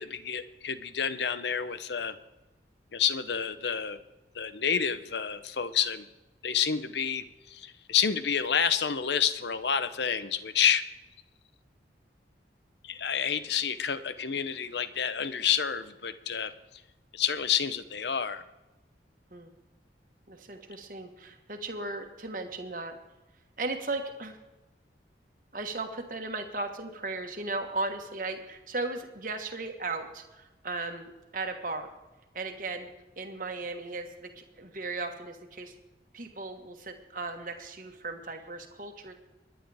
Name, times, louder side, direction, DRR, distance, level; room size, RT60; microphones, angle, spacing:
voice 1, 0.0-2.2 2.9-4.0 4.3-6.1 6.4-10.8 12.8-16.5 17.1-18.4, left 8 dB, 70° left, 13 dB, 0.7 m, -29 dB
voice 2, 20.3-23.0 23.6-24.4 25.5-31.9 32.3-32.9 33.2-35.7 36.1-39.1, right 3 dB, 45° right, 5 dB, 1.4 m, -36 dB
23.5 x 10.0 x 3.5 m, 1.1 s
head